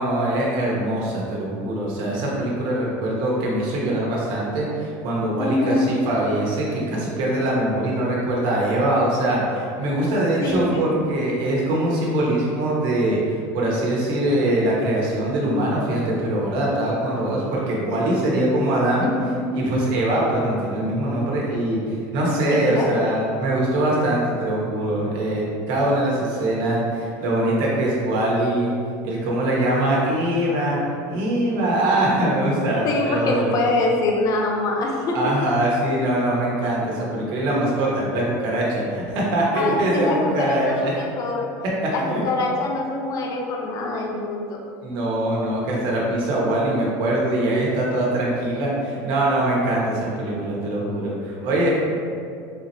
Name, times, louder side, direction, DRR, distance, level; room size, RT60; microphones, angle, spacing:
voice 1, 0.0-13.2 13.5-19.1 19.5-28.7 29.0-30.8 31.1-33.5 35.1-40.9 42.1-42.2 44.8-51.7, right 1 dB, 60° right, -4 dB, 1.3 m, -22 dB
voice 2, 5.4-6.1 10.4-10.8 19.0-19.5 22.5-23.0 32.8-35.3 39.5-41.6 41.9-44.6, left 2 dB, 40° left, 0 dB, 0.6 m, -24 dB
4.1 x 2.9 x 4.1 m, 2.3 s
supercardioid pair, 125°, 9 cm